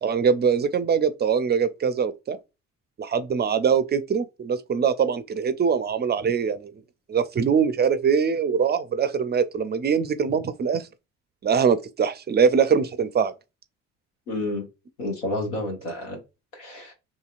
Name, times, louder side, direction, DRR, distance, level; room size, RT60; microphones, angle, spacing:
voice 1, 0.0-2.4 3.0-6.7 7.1-10.9 11.4-13.3, right 6 dB, 30° right, 0.4 m, -23 dB
voice 2, 14.3-14.7 15.0-16.2 16.5-16.9, left 1 dB, 90° left, 1.0 m, -30 dB
2.8 x 2.6 x 2.4 m
hypercardioid pair, 50°, 36 cm